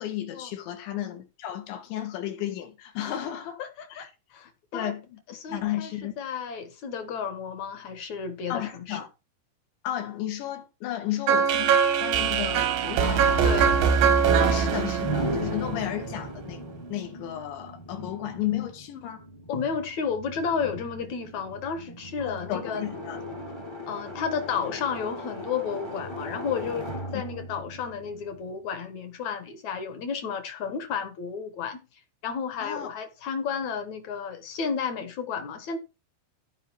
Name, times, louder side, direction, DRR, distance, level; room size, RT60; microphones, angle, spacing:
voice 1, 0.0-3.6 3.9-4.1 4.7-5.2 5.5-6.1 8.5-9.1 9.8-13.5 14.4-16.6 16.9-19.2 22.2-23.2 27.1-27.2 32.6-32.9, left 12 dB, 85° left, 4.2 m, -33 dB
voice 2, 3.6-4.9 5.3-5.9 6.2-9.0 13.0-13.8 19.5-22.8 23.9-31.8 32.2-35.8, left 6 dB, 60° left, 2.0 m, -32 dB
sound 1, 11.3-16.3, right 7 dB, 90° right, 3.9 m, -22 dB
sound 2, 15.0-28.8, equal, 35° left, 0.4 m, -38 dB
15.5 x 5.2 x 4.5 m
omnidirectional pair, 5.0 m